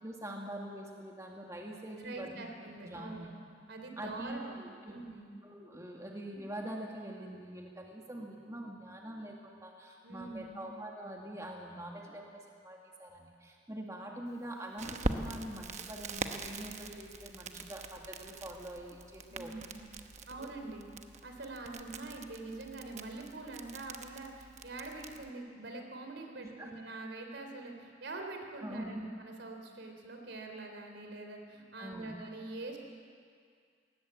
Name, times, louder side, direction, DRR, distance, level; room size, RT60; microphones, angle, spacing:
voice 1, 0.0-2.4 2.8-3.3 4.0-5.0 5.4-19.5 20.4-20.5 26.6-26.7 28.6-29.0 31.8-32.1, right 1 dB, 15° right, -1 dB, 1.9 m, -44 dB
voice 2, 2.0-3.3 3.7-4.6 4.9-5.3 6.3-6.4 10.0-10.7 19.3-19.9 20.3-20.8 21.2-32.8, right 2 dB, 75° right, 3 dB, 3.5 m, -44 dB
Crackle, 14.8-25.3, right 2 dB, 40° right, 1.1 m, -43 dB
20.5 x 19.5 x 8.4 m, 2.2 s
head